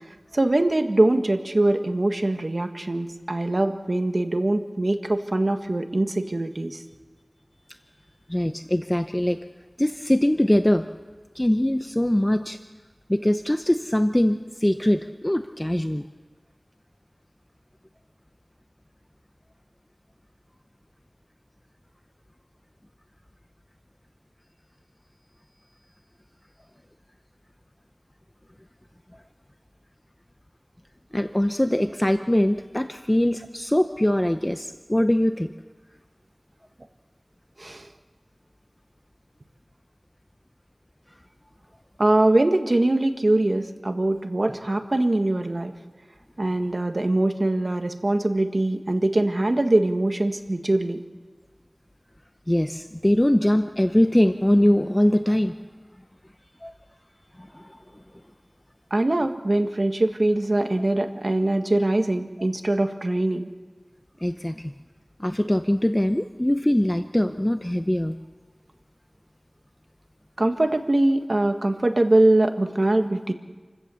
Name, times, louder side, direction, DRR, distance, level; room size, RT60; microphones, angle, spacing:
voice 1, 0.3-6.8 37.6-37.9 42.0-45.7 46.4-51.0 58.9-63.5 70.4-73.3, right 1 dB, 60° right, 6 dB, 1.5 m, -22 dB
voice 2, 8.3-9.4 9.8-10.9 11.3-12.6 13.1-16.0 31.1-35.5 52.5-55.6 56.6-56.7 57.4-57.7 64.2-64.7 65.2-68.2, left 1 dB, 20° left, 9 dB, 0.7 m, -22 dB
28.5 x 16.0 x 7.0 m, 1.3 s
wide cardioid pair, 50°, 0 cm